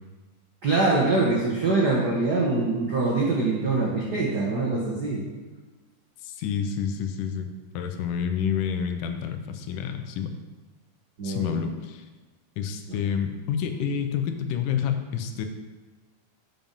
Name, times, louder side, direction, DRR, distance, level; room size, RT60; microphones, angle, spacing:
voice 1, 0.6-5.2 11.2-11.6 12.9-13.0, right 3 dB, 75° right, -4 dB, 0.9 m, -24 dB
voice 2, 6.2-10.3 11.2-12.1 12.6-15.5, left 7 dB, 85° left, 6 dB, 2.3 m, -29 dB
7.4 x 5.9 x 5.3 m, 1.3 s
omnidirectional pair, 3.7 m